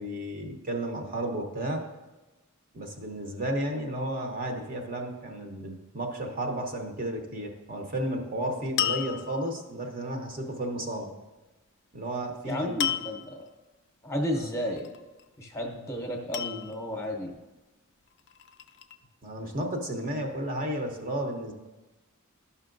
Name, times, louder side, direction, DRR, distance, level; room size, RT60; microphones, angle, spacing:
voice 1, 0.0-1.8 2.7-11.1 11.9-12.8 14.3-14.5 19.2-21.5, right 1 dB, 40° right, 3 dB, 0.8 m, -33 dB
sound 1, 8.8-9.7 12.8-13.4 14.8-15.3 16.3-17.1 18.1-19.0, left 10 dB, 55° left, 0.4 m, -32 dB
voice 2, 12.5-13.5 14.0-14.9 15.4-17.3, left 1 dB, 10° left, 1 dB, 0.8 m, -32 dB
12.5 x 5.6 x 2.5 m, 1.1 s
head